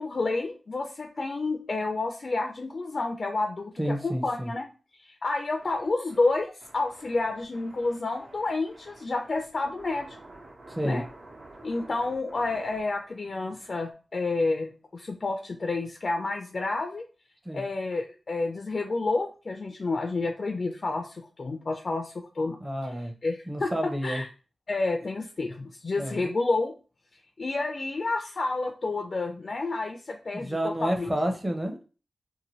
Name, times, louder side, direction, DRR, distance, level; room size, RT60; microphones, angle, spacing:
voice 1, 0.0-3.7 4.0-4.6 5.0-10.2 10.8-11.0 11.6-17.0 17.5-22.6 23.2-24.3 24.7-26.7 27.4-31.1, left 3 dB, 50° left, 4 dB, 0.3 m, -30 dB
voice 2, 3.8-4.5 10.7-11.0 17.4-17.6 22.6-23.1 23.5-24.2 26.0-26.3 30.3-31.8, equal, 15° right, 4 dB, 0.6 m, -30 dB
sound 1, 5.6-13.9, right 2 dB, 75° right, 1.1 m, -50 dB
2.7 x 2.6 x 3.0 m, 0.35 s
wide cardioid pair, 95°, 0 cm